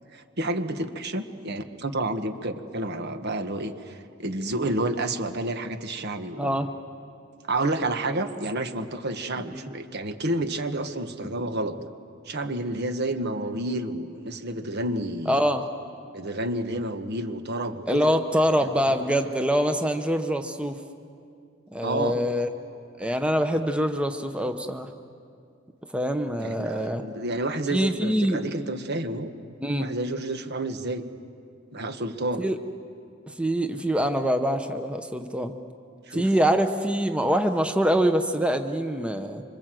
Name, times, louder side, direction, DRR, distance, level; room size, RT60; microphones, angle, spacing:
voice 1, 0.1-6.5 7.5-11.8 12.2-15.4 16.1-18.1 21.8-22.2 26.4-29.3 29.8-31.1 31.7-32.4 36.1-36.3, right 1 dB, 55° right, 8 dB, 1.4 m, -30 dB
voice 2, 6.4-6.7 9.5-9.7 15.3-15.7 17.9-20.8 21.7-22.5 23.0-24.9 25.9-27.0 27.7-28.5 29.6-29.9 32.4-32.6 33.3-35.5 36.1-39.4, equal, 5° right, 7 dB, 0.8 m, -24 dB
25.5 x 25.5 x 7.7 m, 2.4 s
head